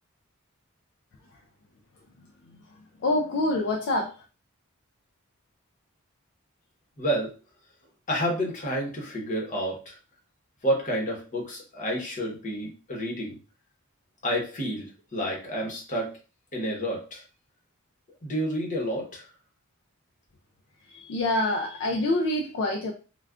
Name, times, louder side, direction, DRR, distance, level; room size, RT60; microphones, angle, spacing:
voice 1, 3.0-4.2 20.9-22.9, left 2 dB, 55° left, 2 dB, 0.4 m, -26 dB
voice 2, 7.0-7.3 8.1-10.0 10.6-13.4 14.2-16.1 16.5-17.2 18.2-19.3, equal, 35° left, -1 dB, 0.9 m, -29 dB
3.5 x 2.3 x 2.3 m, 0.33 s
head